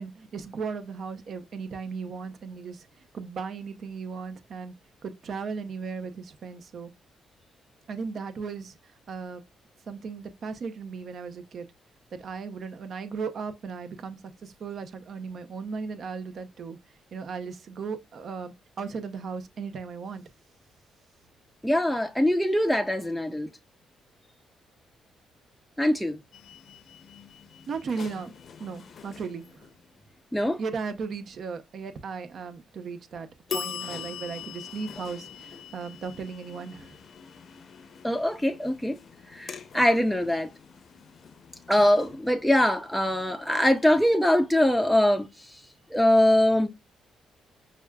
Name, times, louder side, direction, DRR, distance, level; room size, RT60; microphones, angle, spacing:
voice 1, 0.0-2.9 3.1-4.7 5.0-6.9 7.9-8.8 9.1-9.4 9.9-11.7 12.1-16.8 17.1-20.2 27.7-28.3 28.6-29.7 30.6-37.0, right 5 dB, 55° right, 0.6 m, -36 dB
voice 2, 21.6-23.5 25.8-26.2 30.3-30.6 38.0-39.0 39.3-40.5 41.7-45.5 45.9-46.7, left 1 dB, ahead, 0.4 m, -23 dB
sound 1, 26.3-30.1 33.5-44.2, left 7 dB, 55° left, 0.5 m, -43 dB
5.8 x 2.3 x 2.2 m
cardioid pair, 90°, 0 cm